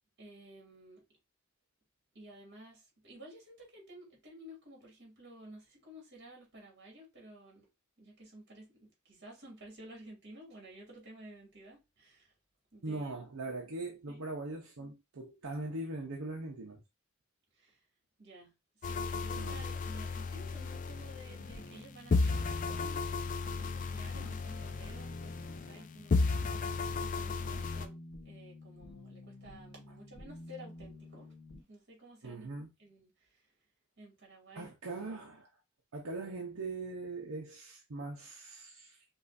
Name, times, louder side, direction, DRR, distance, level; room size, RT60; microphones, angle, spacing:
voice 1, 0.2-1.0 2.1-7.7 8.0-12.3 12.7-13.2 14.1-14.2 17.5-17.8 18.2-28.0 28.2-31.3 31.7-32.5 32.8-33.5 34.0-34.7, right 1 dB, 50° right, 2.2 m, -53 dB
voice 2, 12.8-16.8 19.3-19.7 24.2-24.3 27.4-27.6 32.2-32.7 34.5-35.5 35.9-39.0, right 2 dB, 75° right, 0.8 m, -41 dB
sound 1, 18.8-21.8 22.1-25.8 26.1-27.9, left 4 dB, 35° left, 0.4 m, -34 dB
sound 2, 21.3-31.6, left 1 dB, 60° left, 0.9 m, -50 dB
5.4 x 2.5 x 2.6 m
head